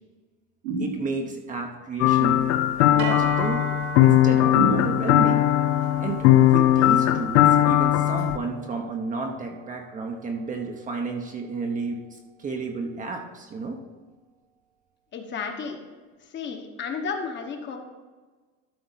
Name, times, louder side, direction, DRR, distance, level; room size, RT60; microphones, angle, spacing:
sound 1, 0.6-1.5 4.5-5.4, right 1 dB, 90° right, 2.8 m, -29 dB
voice 1, 0.8-2.5 2.9-3.7 4.0-5.4 6.0-13.8, right 4 dB, 20° right, 3 dB, 0.8 m, -32 dB
sound 2, 2.0-8.4, left 13 dB, 60° left, 0.6 m, -19 dB
sound 3, 3.0-11.3, right 6 dB, 55° right, 1.1 m, -39 dB
voice 2, 15.1-15.8 16.2-17.8, left 5 dB, 30° left, 4 dB, 1.1 m, -32 dB
12.5 x 4.2 x 5.7 m, 1.3 s
supercardioid pair, 140°, 39 cm